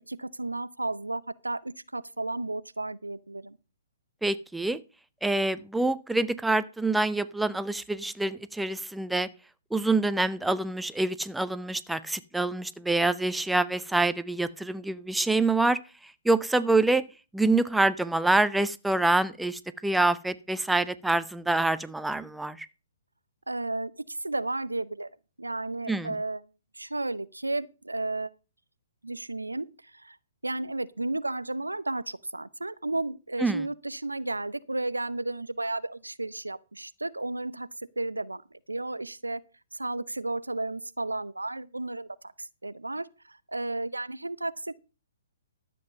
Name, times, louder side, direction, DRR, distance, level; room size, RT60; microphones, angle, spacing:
voice 1, 0.0-3.6 23.5-25.1 25.4-26.4 26.7-28.3 29.0-30.2 30.4-37.7 38.0-38.4 38.7-39.4 39.7-42.1 42.4-44.8, right 2 dB, 85° right, 0.6 m, -33 dB
voice 2, 4.2-4.8 5.2-9.3 9.7-15.8 16.2-17.0 17.3-22.7 25.9-26.1 33.4-33.6, right 2 dB, 5° right, 0.6 m, -26 dB
12.5 x 7.8 x 5.3 m
figure-of-eight pair, 125°, 0 cm